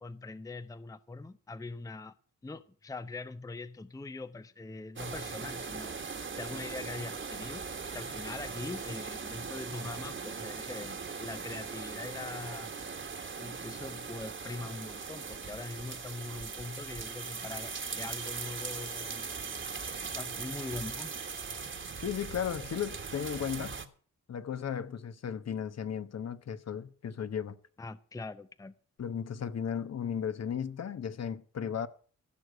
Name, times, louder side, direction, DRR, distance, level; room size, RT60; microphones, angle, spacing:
voice 1, 0.0-2.1 2.4-6.0 6.4-7.6 7.9-12.7 13.4-19.3 19.8-21.1 27.8-28.8, left 3 dB, 10° left, 0.6 m, -42 dB
sound 1, 5.0-23.9, right 5 dB, 40° right, 1.6 m, -40 dB
voice 2, 22.0-23.8 24.3-27.6 29.0-31.9, left 8 dB, 55° left, 1.1 m, -35 dB
16.0 x 6.6 x 7.7 m
cardioid pair, 95°, 32 cm